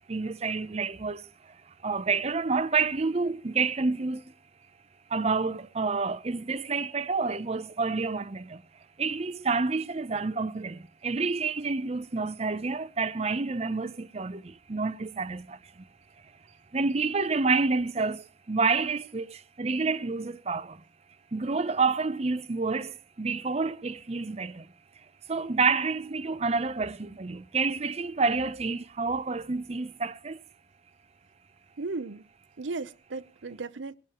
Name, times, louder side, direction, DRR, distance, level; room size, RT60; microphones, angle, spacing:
voice 1, 0.1-4.3 5.1-8.6 9.0-15.8 16.7-20.8 21.3-24.7 25.3-30.4, right 4 dB, 35° right, 0.6 m, -29 dB
voice 2, 31.8-32.2 32.6-34.0, right 3 dB, 85° right, 0.7 m, -35 dB
22.0 x 12.0 x 3.0 m
head